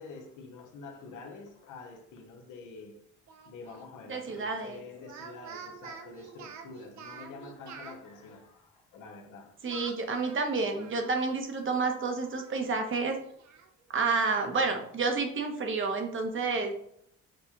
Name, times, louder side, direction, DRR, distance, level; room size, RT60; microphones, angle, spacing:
voice 1, 0.0-3.0 3.4-9.6, left 4 dB, 85° left, 0.9 m, -47 dB
Speech, 3.3-3.9 5.0-8.0 9.7-11.4 11.7-11.8 12.3-13.7, right 6 dB, 65° right, 0.7 m, -48 dB
voice 2, 4.1-4.8 9.6-13.2 13.9-16.7, right 4 dB, 40° right, 0.9 m, -30 dB
6.3 x 2.3 x 2.9 m
cardioid pair, 90°, 30 cm